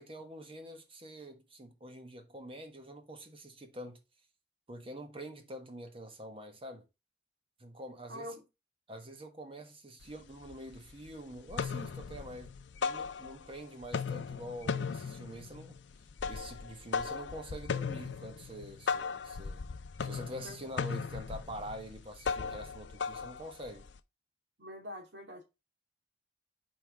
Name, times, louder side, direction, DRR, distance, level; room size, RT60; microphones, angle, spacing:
voice 1, 0.0-4.0 4.7-6.9 7.6-8.3 8.9-12.5 12.8-15.8 16.3-19.7 20.0-23.9, right 1 dB, 30° right, 1.3 m, -46 dB
voice 2, 8.1-8.4 20.4-20.6 24.6-25.4, left 1 dB, 80° right, 2.4 m, -44 dB
sound 1, 10.0-10.1 10.5-11.1 11.4-13.6 13.8-24.0, left 5 dB, 85° left, 0.5 m, -37 dB
5.6 x 4.6 x 4.6 m
head